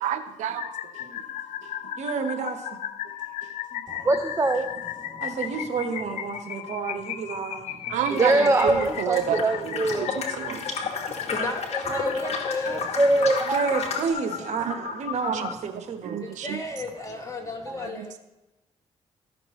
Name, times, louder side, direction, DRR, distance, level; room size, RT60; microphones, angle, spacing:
voice 1, 0.0-0.6 7.9-10.9 14.7-15.0 15.3-15.5 16.0-16.6 18.0-18.1, right 9 dB, 85° right, 0.5 m, -30 dB
sound 1, 0.6-15.5, left 10 dB, 85° left, 0.5 m, -36 dB
voice 2, 2.0-2.6 3.7-3.8 5.2-7.7 10.3-10.6 13.5-16.2, right 5 dB, 70° right, 1.1 m, -30 dB
voice 3, 3.9-4.7 5.1-5.2 8.1-11.2 11.9-12.3 12.7-13.6 17.7-17.8, right 2 dB, 25° right, 0.6 m, -24 dB
sound 2, 8.1-14.1, left 4 dB, 60° left, 1.4 m, -33 dB
voice 4, 11.3-12.9 13.1-13.4 16.1-18.2, left 2 dB, 25° left, 1.8 m, -33 dB
14.0 x 6.0 x 3.0 m
cardioid pair, 75°, 12 cm